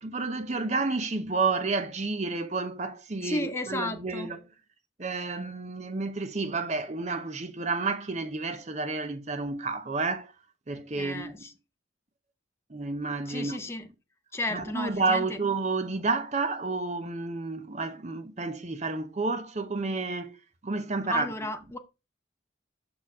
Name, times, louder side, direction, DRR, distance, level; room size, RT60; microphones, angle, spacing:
voice 1, 0.0-4.4 5.0-10.3 10.7-11.3 12.7-13.6 14.5-20.4 20.6-21.3, right 3 dB, 35° right, 0.7 m, -30 dB
voice 2, 3.2-4.3 11.0-11.5 13.3-13.9 14.3-15.4 21.1-21.8, left 2 dB, 15° left, 0.6 m, -33 dB
5.8 x 4.4 x 4.6 m
head